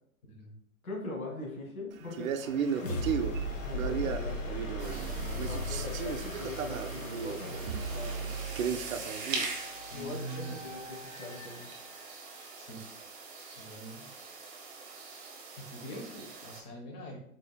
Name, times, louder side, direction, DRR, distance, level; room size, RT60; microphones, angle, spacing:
voice 1, 0.2-0.5 9.9-10.6 12.5-12.8 13.4-14.0 15.6-17.2, right 1 dB, 30° left, -1 dB, 0.7 m, -43 dB
voice 2, 0.8-3.0 3.6-8.3 9.9-11.7, left 2 dB, 90° left, -1 dB, 1.4 m, -42 dB
Male speech man speaking, 2.1-5.1 5.4-9.5, right 7 dB, 75° right, 0.5 m, -35 dB
sound 1, 2.6-12.3, equal, 65° left, 1.0 m, -38 dB
sound 2, 4.8-16.6, right 4 dB, 35° right, 0.8 m, -43 dB
3.8 x 3.2 x 2.2 m, 0.69 s
hypercardioid pair, 135°, 42 cm